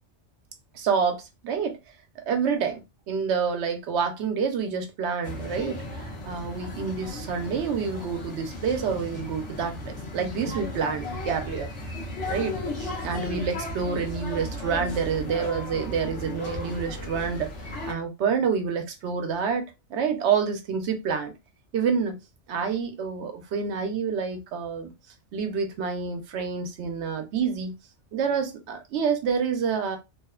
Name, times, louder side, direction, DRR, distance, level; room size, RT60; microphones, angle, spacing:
voice 1, 0.7-1.8 2.3-5.8 6.2-11.7 12.3-21.3 21.7-22.2 22.5-24.9 25.3-27.7 28.1-30.0, right 6 dB, 70° right, 0.9 m, -28 dB
sound 1, 5.2-17.9, left 1 dB, 75° left, 1.1 m, -35 dB
2.9 x 2.0 x 2.3 m
omnidirectional pair, 1.2 m